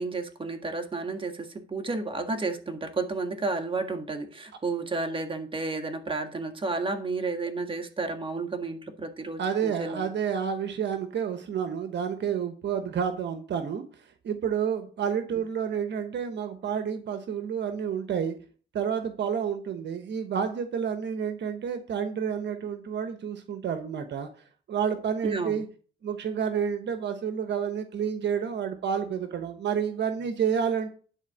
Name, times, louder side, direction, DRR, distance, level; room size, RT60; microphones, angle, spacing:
voice 1, 0.0-10.1 25.2-25.6, right 3 dB, 25° right, 5 dB, 1.9 m, -32 dB
voice 2, 9.4-13.8 14.2-18.4 18.7-24.3 24.7-25.7 26.0-30.9, right 7 dB, 60° right, 8 dB, 1.1 m, -29 dB
10.5 x 4.2 x 7.2 m, 0.41 s
cardioid pair, 90°, 20 cm